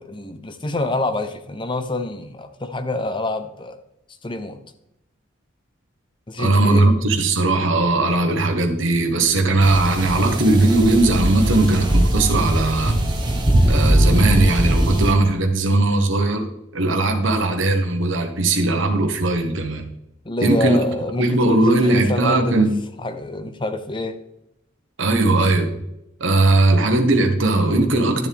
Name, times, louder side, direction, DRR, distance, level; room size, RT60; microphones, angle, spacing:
voice 1, 0.0-3.8 4.2-4.6 6.3-6.9 20.2-22.7 23.0-24.2, left 2 dB, 25° left, 9 dB, 0.7 m, -26 dB
voice 2, 6.4-13.0 13.7-16.5 16.7-19.9 20.4-20.8 21.2-22.7 25.0-25.7 26.2-28.3, right 2 dB, 65° right, 4 dB, 1.2 m, -18 dB
sound 1, 9.6-15.1, right 1 dB, 20° right, 1.2 m, -20 dB
12.0 x 7.2 x 3.5 m, 0.84 s
head